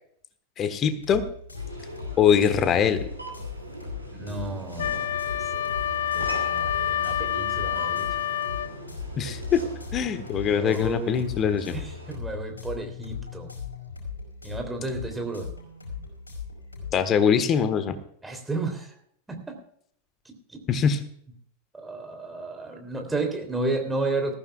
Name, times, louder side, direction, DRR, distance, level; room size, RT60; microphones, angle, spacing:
voice 1, 0.6-1.2 2.2-3.0 9.2-9.6 9.9-11.8 16.9-18.0 20.7-21.0, left 7 dB, 30° left, 11 dB, 1.3 m, -22 dB
sound 1, 0.8-17.1, left 5 dB, 75° left, 5.0 m, -38 dB
sound 2, 1.5-12.2, right 1 dB, 85° right, 3.2 m, -41 dB
voice 2, 4.1-5.7 6.1-8.2 10.6-13.5 14.4-15.5 18.2-18.9 19.3-19.6 20.2-20.8 21.7-24.3, right 3 dB, 10° right, 4 dB, 3.2 m, -33 dB
Wind instrument woodwind instrument, 4.8-8.8, left 11 dB, 60° left, 0.6 m, -28 dB
19.5 x 14.5 x 2.3 m, 0.64 s
figure-of-eight pair, 90°, 0 cm